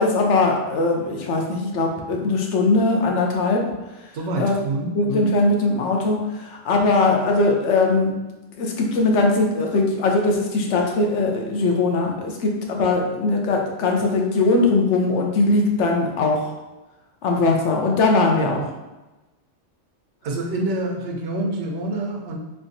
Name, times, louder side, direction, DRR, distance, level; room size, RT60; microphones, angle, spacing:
voice 1, 0.0-3.6 4.4-4.6 4.9-8.1 8.6-16.5 17.2-18.7, left 3 dB, 85° left, 1 dB, 1.0 m, -20 dB
voice 2, 4.1-4.9 20.2-22.4, right 2 dB, 80° right, 1 dB, 1.0 m, -26 dB
3.5 x 3.3 x 2.6 m, 1.1 s
omnidirectional pair, 1.2 m